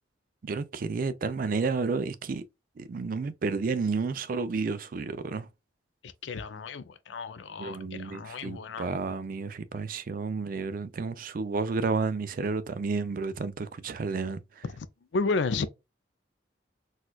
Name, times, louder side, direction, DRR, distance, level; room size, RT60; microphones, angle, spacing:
voice 1, 0.4-2.4 2.8-5.5 7.6-14.6, right 4 dB, 45° right, 0.4 m, -31 dB
voice 2, 6.0-8.9 14.6-14.9 15.1-15.7, left 4 dB, 75° left, 0.4 m, -32 dB
4.2 x 2.3 x 2.2 m
head